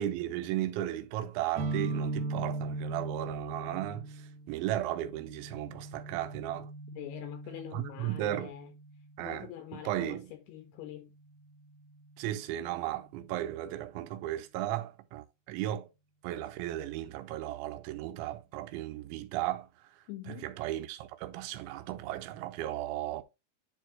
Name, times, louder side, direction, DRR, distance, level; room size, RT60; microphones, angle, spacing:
voice 1, 0.0-6.7 7.7-8.5 9.2-10.3 12.2-15.9 16.2-19.7 20.4-23.2, right 13 dB, 90° right, 3.1 m, -35 dB
sound 1, 1.5-9.2, right 3 dB, 65° right, 1.9 m, -39 dB
voice 2, 6.9-8.7 9.2-11.1 20.1-20.5, left 13 dB, 80° left, 2.4 m, -44 dB
11.0 x 4.6 x 3.0 m
omnidirectional pair, 5.2 m